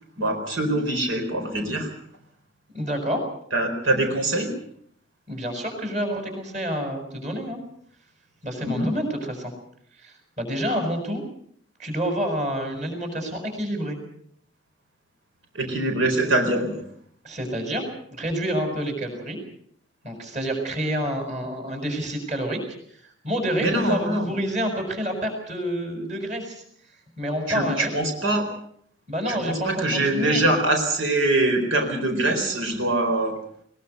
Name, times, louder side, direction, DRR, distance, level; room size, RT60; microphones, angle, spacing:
voice 1, 0.2-1.9 3.5-4.5 8.6-8.9 15.5-16.8 23.6-24.3 27.5-28.5 29.3-33.3, right 1 dB, 90° right, 4 dB, 4.5 m, -23 dB
voice 2, 2.7-3.2 5.3-7.6 8.4-9.5 10.0-11.2 11.8-14.0 17.2-17.8 18.1-19.4 20.0-22.6 22.9-26.6 27.2-28.0 29.1-30.5, equal, 35° right, 5 dB, 6.4 m, -28 dB
21.5 x 21.0 x 6.8 m, 0.66 s
head